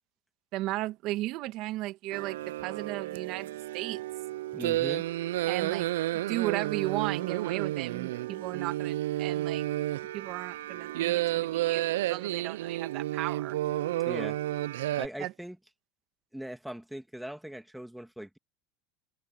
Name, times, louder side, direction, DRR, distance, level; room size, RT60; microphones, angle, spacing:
voice 1, 0.5-4.0 5.5-5.9 6.1-9.6 10.1-13.6 15.2-15.3, right 17 dB, 60° right, 2.2 m, -35 dB
sound 1, 2.1-15.1, right 15 dB, 90° right, 0.3 m, -31 dB
voice 2, 4.5-5.1 13.9-14.4 15.0-15.6 16.3-18.4, right 1 dB, 5° right, 2.3 m, -40 dB
supercardioid pair, 110°, 0 cm